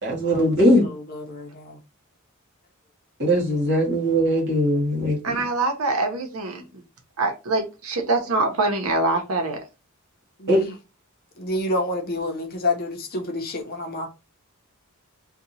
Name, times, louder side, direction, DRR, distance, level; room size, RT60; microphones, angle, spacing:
voice 1, 0.0-0.8 3.2-5.3 10.5-10.6, equal, 55° right, 1.4 m, -20 dB
voice 2, 0.8-1.8 10.4-10.7 11.4-14.1, left 2 dB, 45° left, 0.7 m, -29 dB
voice 3, 5.2-6.6 7.2-9.6, right 2 dB, 85° right, 0.8 m, -24 dB
2.8 x 2.3 x 4.0 m
head